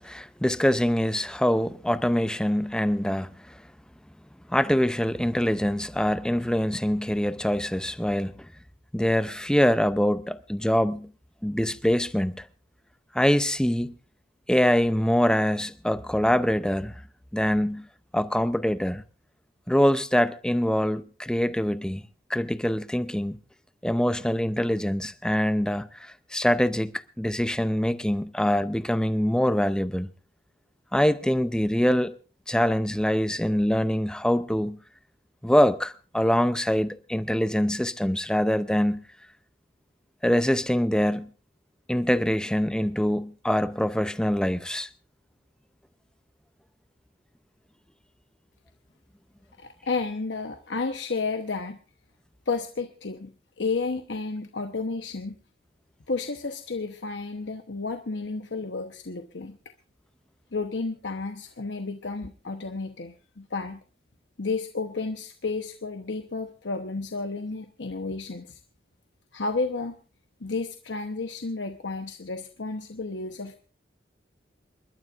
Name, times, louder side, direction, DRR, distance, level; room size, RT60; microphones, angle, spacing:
voice 1, 0.0-3.5 4.5-8.5 8.9-11.1 11.4-12.5 13.1-13.9 14.5-16.9 17.3-17.9 18.1-19.0 19.7-22.0 22.3-23.4 23.8-30.1 30.9-32.1 32.5-34.8 35.4-39.0 40.2-41.3 41.9-44.9, equal, 5° left, 0.6 m, -24 dB
voice 2, 49.6-51.8 52.5-55.3 56.1-59.6 60.5-63.8 64.4-68.6 69.3-69.9 70.4-73.6, left 3 dB, 85° left, 1.0 m, -32 dB
28.0 x 12.0 x 2.5 m
head